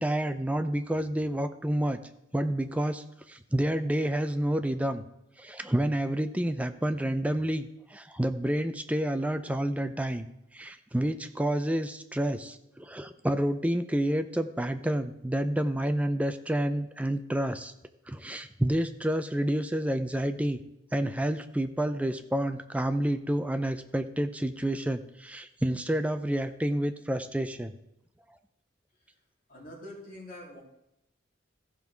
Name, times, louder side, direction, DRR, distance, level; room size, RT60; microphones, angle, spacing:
voice 1, 0.0-2.0 2.3-5.0 5.4-10.3 10.5-17.7 18.1-20.6 20.9-27.7, right 1 dB, 5° right, 9 dB, 0.5 m, -29 dB
voice 2, 29.5-30.6, left 1 dB, 50° left, -4 dB, 3.2 m, -44 dB
14.5 x 5.5 x 4.6 m, 0.84 s
head